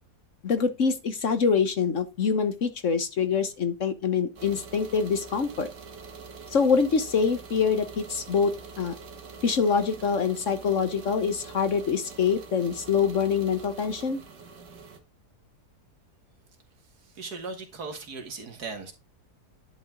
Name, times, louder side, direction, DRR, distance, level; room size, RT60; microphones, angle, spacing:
voice 1, 0.4-5.7 6.5-8.5 8.8-9.0 9.4-14.2, left 6 dB, 50° left, 1.3 m, -25 dB
sound 1, 4.4-15.0, right 5 dB, 85° right, 2.1 m, -45 dB
voice 2, 17.1-18.9, right 4 dB, 70° right, 2.3 m, -37 dB
10.5 x 5.4 x 3.8 m
omnidirectional pair, 1.8 m